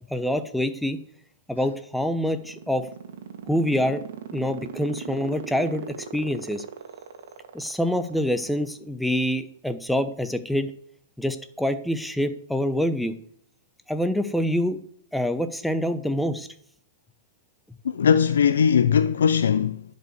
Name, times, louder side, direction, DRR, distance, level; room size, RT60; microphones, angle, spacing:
voice 1, 0.1-1.0 1.5-2.9 3.5-4.0 4.3-5.9 6.1-6.6 7.5-10.7 11.2-13.1 13.9-14.8 15.1-16.5, equal, ahead, 0.8 m, -26 dB
sound 1, 2.1-8.6, right 9 dB, 70° right, 1.7 m, -37 dB
voice 2, 17.8-19.8, left 7 dB, 80° left, 0.5 m, -20 dB
11.0 x 5.4 x 8.0 m
hypercardioid pair, 130°, 0 cm